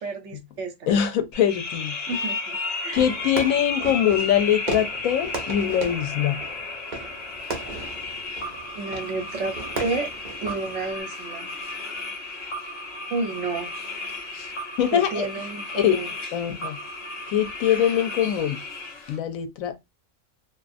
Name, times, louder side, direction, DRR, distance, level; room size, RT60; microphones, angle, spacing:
voice 1, 0.0-0.9 2.1-3.0 8.8-9.5 9.8-10.1 10.4-11.5 13.1-13.7 14.9-16.1, right 3 dB, 65° right, 0.9 m, -31 dB
voice 2, 0.9-2.0 2.9-6.4 14.3-14.5 14.8-15.3 15.7-16.0 16.3-16.8 17.3-18.6 19.1-19.7, left 10 dB, 85° left, 1.0 m, -23 dB
sound 1, 1.3-19.2, left 3 dB, 55° left, 1.1 m, -34 dB
Fireworks, 2.9-11.0, right 3 dB, 45° right, 0.6 m, -36 dB
2.4 x 2.4 x 2.4 m
omnidirectional pair, 1.4 m